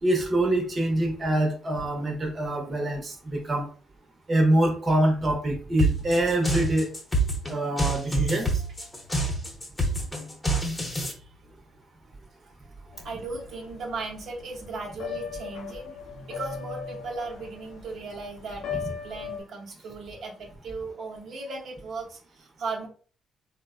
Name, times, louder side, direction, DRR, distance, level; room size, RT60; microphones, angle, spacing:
voice 1, 0.0-3.7 4.3-6.9 7.5-8.5, right 1 dB, 30° right, 1 dB, 0.7 m, -25 dB
sound 1, 5.8-11.1, right 2 dB, 15° left, 0.8 m, -26 dB
voice 2, 10.9-11.2 13.0-22.9, right 3 dB, 65° right, -1 dB, 0.7 m, -37 dB
sound 2, 12.9-19.4, left 7 dB, 85° left, 0.5 m, -39 dB
3.3 x 2.1 x 2.3 m, 0.42 s
cardioid pair, 90°, 0 cm